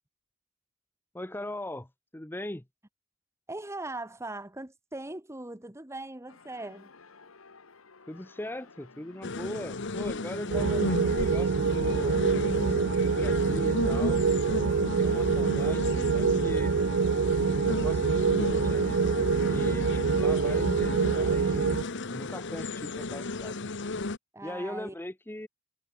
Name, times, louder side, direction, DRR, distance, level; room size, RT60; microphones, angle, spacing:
voice 1, 1.1-2.6 8.1-12.4 13.0-14.2 14.8-15.8 16.1-16.8 17.7-19.0 19.5-23.6 24.4-25.5, left 1 dB, 10° left, 0.9 m, -40 dB
voice 2, 3.5-6.9 24.3-24.9, right 2 dB, 15° right, 1.2 m, -40 dB
sound 1, 6.3-22.3, left 4 dB, 75° left, 1.6 m, -53 dB
sound 2, 9.2-24.2, left 3 dB, 60° left, 1.2 m, -35 dB
sound 3, 10.5-21.8, right 5 dB, 60° right, 0.5 m, -26 dB
head